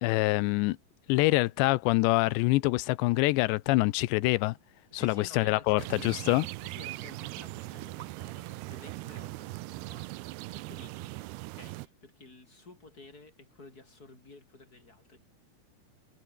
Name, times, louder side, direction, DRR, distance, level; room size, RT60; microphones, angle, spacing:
voice 1, 0.0-0.8 1.1-4.6 5.0-6.5, left 20 dB, 90° left, 3.0 m, -25 dB
voice 2, 4.9-6.2 6.6-15.2, left 3 dB, 20° left, 5.6 m, -52 dB
sound 1, 5.8-11.9, right 20 dB, 80° right, 2.5 m, -40 dB
omnidirectional pair, 4.9 m